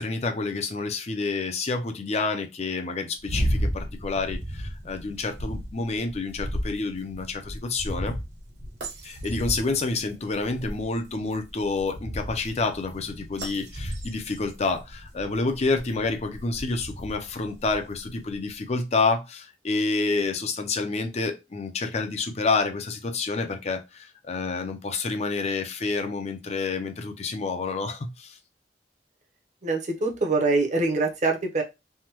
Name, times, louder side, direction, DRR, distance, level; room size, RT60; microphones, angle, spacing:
voice 1, 0.0-8.2 9.0-28.4, left 3 dB, 40° left, 6 dB, 0.5 m, -28 dB
sound 1, 3.2-18.4, equal, 75° right, 1.4 m, -34 dB
voice 2, 29.6-31.6, right 3 dB, 45° right, 1 dB, 0.8 m, -24 dB
3.4 x 2.2 x 2.9 m, 0.23 s
head